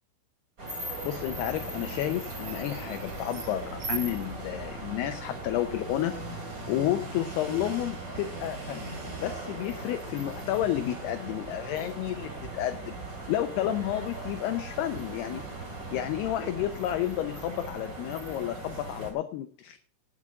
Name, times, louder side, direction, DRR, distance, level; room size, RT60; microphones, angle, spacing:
sound 1, 0.6-19.1, right 2 dB, 25° right, 2.3 m, -38 dB
voice 1, 1.0-6.2 6.7-13.0 13.3-15.4 15.9-19.8, left 12 dB, 75° left, 8 dB, 2.5 m, -31 dB
18.0 x 8.4 x 3.6 m, 0.38 s
omnidirectional pair, 5.3 m